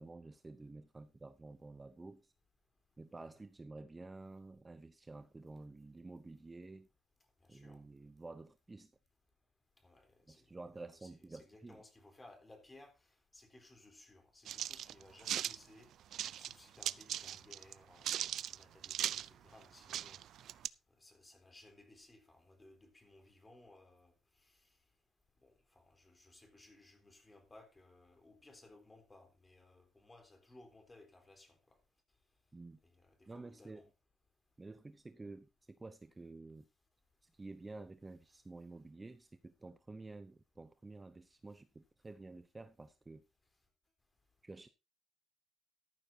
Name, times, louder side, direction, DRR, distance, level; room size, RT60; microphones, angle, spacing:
voice 1, 0.0-2.3 3.0-6.9 7.5-8.9 10.3-11.8 32.5-32.8 33.3-33.9 34.6-36.6 37.2-43.2 44.4-44.7, right 3 dB, 20° right, 0.7 m, -51 dB
voice 2, 7.4-7.8 9.8-10.5 10.8-12.9 13.3-15.9 16.4-20.6 21.0-24.1 24.4-24.6 25.4-31.8 32.8-33.9, left 2 dB, 20° left, 3.8 m, -61 dB
sound 1, 14.5-15.6 16.1-16.5 16.8-17.7 18.0-19.3 19.6-19.7 19.9-20.7, right 11 dB, 70° right, 0.5 m, -38 dB
13.5 x 12.0 x 2.8 m
cardioid pair, 115°, 0 cm